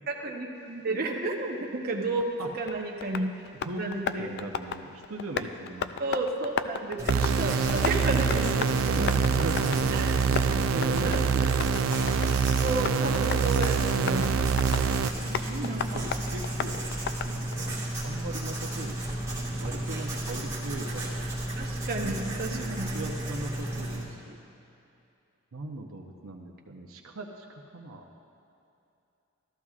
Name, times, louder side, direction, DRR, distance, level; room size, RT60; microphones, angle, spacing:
voice 1, 0.1-3.4 3.8-4.3 6.0-9.1 9.6-10.2 11.0-11.8 12.6-14.4 15.2-16.0 21.6-23.0 23.8-23.9, right 2 dB, 45° right, -1 dB, 1.0 m, -32 dB
Tap, 2.2-17.7, left 7 dB, 50° left, 0.3 m, -36 dB
voice 2, 3.5-6.2 8.9-12.3 15.2-16.9 17.3-17.7 18.0-21.1 22.0-22.2 22.5-24.4 25.5-28.0, right 2 dB, 90° right, 1 dB, 0.8 m, -39 dB
Writing, 7.0-24.0, right 1 dB, 15° right, 1.6 m, -33 dB
sound 1, 7.1-15.1, right 6 dB, 70° right, 0.4 m, -26 dB
13.5 x 13.5 x 2.4 m, 2.7 s
head